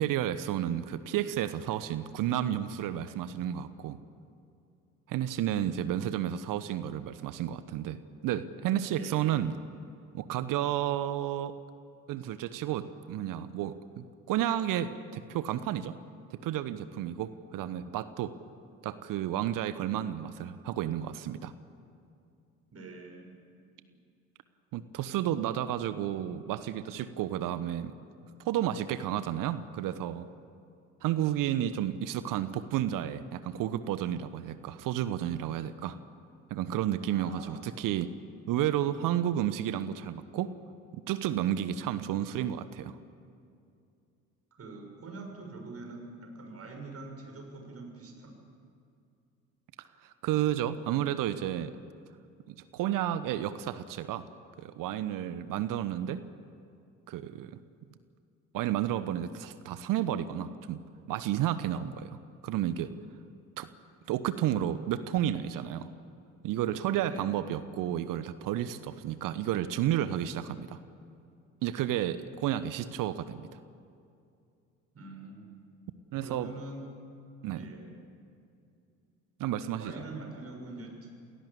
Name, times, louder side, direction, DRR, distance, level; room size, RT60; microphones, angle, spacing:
voice 1, 0.0-4.0 5.1-9.6 10.1-11.5 12.1-15.9 16.3-18.3 18.8-21.5 24.7-27.9 28.4-30.3 31.0-36.0 36.5-38.1 38.5-40.5 40.9-43.0 50.0-51.7 52.5-54.3 54.6-56.2 57.1-57.6 58.5-62.9 63.6-63.7 64.1-65.9 66.4-70.8 71.6-73.5 76.1-76.5 77.4-77.6 79.4-79.9, right 11 dB, 55° right, 13 dB, 1.2 m, -31 dB
voice 2, 8.9-9.4 22.7-23.4 37.1-37.7 44.5-48.3 67.1-67.4 74.9-75.5 76.2-76.9 77.5-78.0 79.8-81.1, right 2 dB, 35° right, 2 dB, 6.9 m, -44 dB
28.5 x 18.0 x 8.4 m, 2.5 s
figure-of-eight pair, 55°, 40 cm